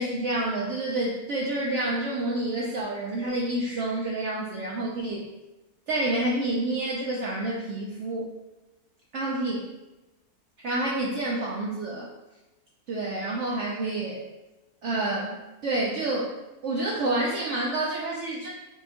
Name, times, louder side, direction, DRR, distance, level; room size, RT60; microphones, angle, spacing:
voice 1, 0.0-5.3 5.9-8.3 9.1-9.7 10.6-12.1 12.9-14.2 14.8-16.3 16.6-18.5, right 2 dB, 70° right, -4 dB, 0.7 m, -28 dB
5.2 x 2.2 x 2.8 m, 1.1 s
omnidirectional pair, 1.6 m